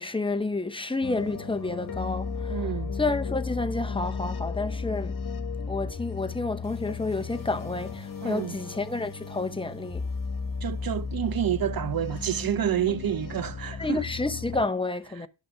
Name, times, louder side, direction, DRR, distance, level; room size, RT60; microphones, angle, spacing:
voice 1, 0.0-2.6 3.0-5.2 5.7-10.1 13.8-15.3, left 3 dB, 10° left, 0.8 m, -30 dB
sound 1, 1.0-14.6, left 5 dB, 45° left, 1.3 m, -34 dB
voice 2, 2.5-3.0 8.2-8.6 10.6-14.0, right 10 dB, 50° right, 0.6 m, -29 dB
9.5 x 6.2 x 6.0 m
wide cardioid pair, 100°, 46 cm